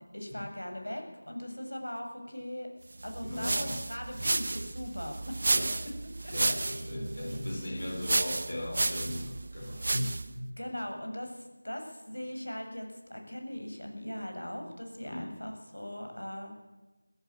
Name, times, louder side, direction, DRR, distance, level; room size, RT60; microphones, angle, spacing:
voice 1, 0.1-2.7 3.0-5.6 6.2-6.6 7.6-7.8 10.6-16.5, left 1 dB, 85° left, 3 dB, 7.3 m, -40 dB
sound 1, 3.0-10.4, right 2 dB, 40° right, 0.9 m, -32 dB
voice 2, 3.2-3.8 4.1-4.3 5.5-5.7 6.3-10.5 15.0-15.4, left 1 dB, 40° left, 1 dB, 4.5 m, -37 dB
22.0 x 14.5 x 8.9 m, 1.2 s
figure-of-eight pair, 170°, 0 cm